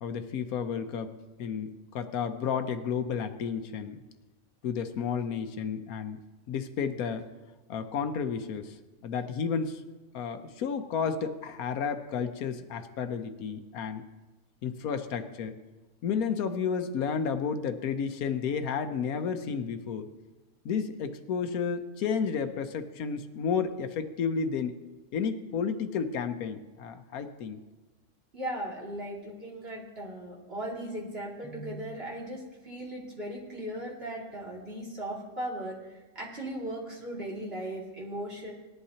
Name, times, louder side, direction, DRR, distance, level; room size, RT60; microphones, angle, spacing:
voice 1, 0.0-4.0 4.6-6.2 6.5-7.3 7.7-8.7 9.0-9.8 10.1-14.0 14.6-15.5 16.0-20.1 20.6-24.8 25.1-27.6, left 6 dB, 80° left, 8 dB, 1.2 m, -32 dB
voice 2, 28.3-38.5, right 1 dB, 45° right, -4 dB, 2.8 m, -37 dB
19.0 x 11.0 x 2.8 m, 1.2 s
omnidirectional pair, 1.5 m